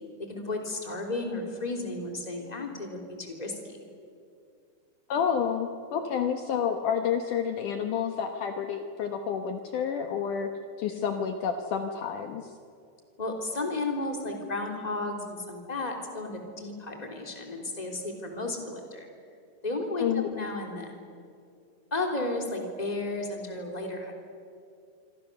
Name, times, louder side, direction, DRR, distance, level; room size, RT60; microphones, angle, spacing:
voice 1, 0.3-3.8 13.2-19.1 19.6-20.9 21.9-24.1, left 2 dB, 10° left, 2 dB, 2.6 m, -33 dB
voice 2, 5.1-10.5 10.8-12.4 20.0-20.3, left 7 dB, 85° left, 6 dB, 1.8 m, -29 dB
26.5 x 25.5 x 6.8 m, 2.4 s
omnidirectional pair, 5.4 m